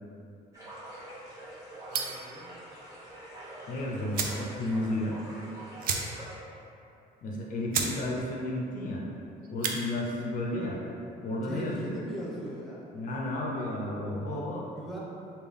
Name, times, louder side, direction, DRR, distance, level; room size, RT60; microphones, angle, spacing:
sound 1, 0.5-6.4, right 1 dB, 20° right, 1.1 m, -45 dB
voice 1, 1.9-2.5 7.3-7.4 11.4-12.8 14.3-15.0, right 1 dB, ahead, -5 dB, 0.7 m, -40 dB
sound 2, 1.9-2.3 3.6-3.7 4.1-4.5 4.8-4.9 5.1-5.3 5.8-6.4 6.7-6.8 7.3-7.4 7.7-8.0 8.3-8.7 9.4-9.8, right 6 dB, 55° right, 0.4 m, -32 dB
voice 2, 3.7-5.2 7.2-9.0 9.5-10.8 11.2-11.9 12.9-14.6, left 1 dB, 50° left, -2 dB, 0.5 m, -32 dB
3.5 x 2.3 x 3.5 m, 2.7 s
cardioid pair, 110°, 17 cm